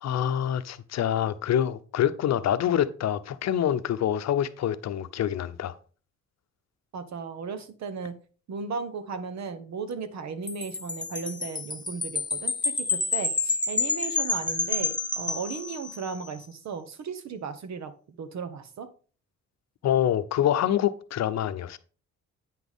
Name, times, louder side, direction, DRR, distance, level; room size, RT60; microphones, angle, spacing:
voice 1, 0.0-5.7 19.8-21.8, left 10 dB, 60° left, 0.8 m, -26 dB
voice 2, 6.9-8.2 8.5-18.9, right 5 dB, 65° right, 1.2 m, -36 dB
Wind chime, 10.5-16.2, left 3 dB, 15° left, 1.1 m, -29 dB
9.1 x 6.0 x 3.6 m
cardioid pair, 90°, 30 cm